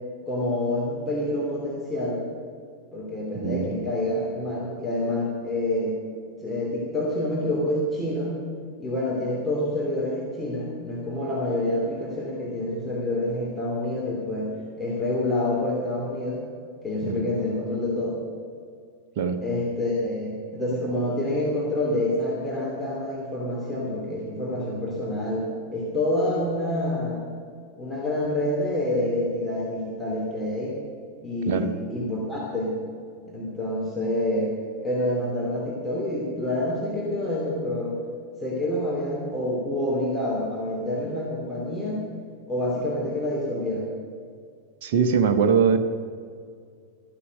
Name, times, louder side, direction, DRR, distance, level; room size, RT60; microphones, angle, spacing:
voice 1, 0.3-2.2 2.9-6.0 6.4-8.4 8.8-16.4 16.8-18.2 19.4-27.2 27.8-30.8 31.2-32.8 33.3-38.0 38.4-42.1 42.5-44.0, left 1 dB, 10° left, -4 dB, 2.8 m, -27 dB
voice 2, 3.4-3.8 17.0-17.3 19.2-19.4 31.5-31.7 44.8-45.8, right 6 dB, 50° right, 5 dB, 1.0 m, -22 dB
13.5 x 11.5 x 6.4 m, 2.1 s
figure-of-eight pair, 90°, 0 cm